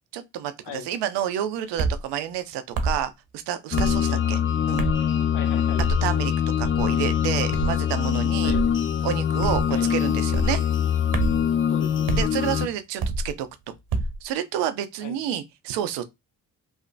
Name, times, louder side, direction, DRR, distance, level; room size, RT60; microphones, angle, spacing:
voice 1, 0.1-4.4 4.7-4.9 6.0-6.3 6.6-8.5 9.0-10.6 12.2-13.5 14.2-16.0, right 10 dB, 80° right, 0.6 m, -29 dB
sound 1, 1.8-2.0 2.7-3.0 3.8-4.0 4.8-5.1 5.8-6.0 6.6-6.9 7.5-7.8 8.5-8.7 9.4-9.7 10.3-10.6 11.1-11.4 12.1-12.3 13.0-13.3 13.9-14.2, right 2 dB, 55° right, 0.8 m, -26 dB
sound 2, 3.7-12.7, left 8 dB, 30° left, 0.4 m, -23 dB
voice 2, 5.3-5.9 8.4-8.6 9.7-9.9 11.7-12.2 15.0-15.2, left 7 dB, 75° left, 0.8 m, -38 dB
3.0 x 2.0 x 2.6 m
hypercardioid pair, 45°, 42 cm